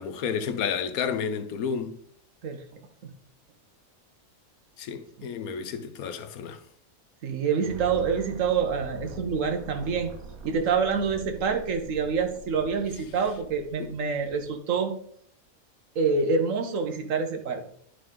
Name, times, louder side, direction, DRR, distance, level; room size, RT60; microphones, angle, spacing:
voice 1, 0.0-2.0 4.8-6.6 13.8-13.9, left 7 dB, 85° left, 1.2 m, -31 dB
voice 2, 7.2-10.1 10.4-14.9 15.9-17.6, right 5 dB, 65° right, 1.3 m, -27 dB
sound 1, 7.6-14.5, right 2 dB, 85° right, 1.4 m, -43 dB
11.0 x 3.8 x 3.6 m
omnidirectional pair, 1.5 m